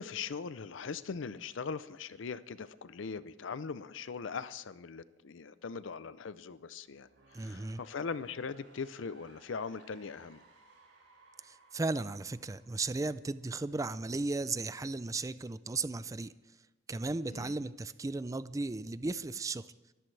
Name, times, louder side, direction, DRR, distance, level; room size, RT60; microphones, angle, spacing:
voice 1, 0.0-7.1 7.4-10.4 17.3-17.5, left 5 dB, 70° left, 15 dB, 0.5 m, -40 dB
sound 1, 6.8-13.7, right 2 dB, 90° right, 5.2 m, -62 dB
voice 2, 7.3-7.8 11.4-16.3 16.9-19.7, right 3 dB, 15° right, 15 dB, 0.4 m, -35 dB
24.0 x 14.0 x 3.3 m, 1.1 s
head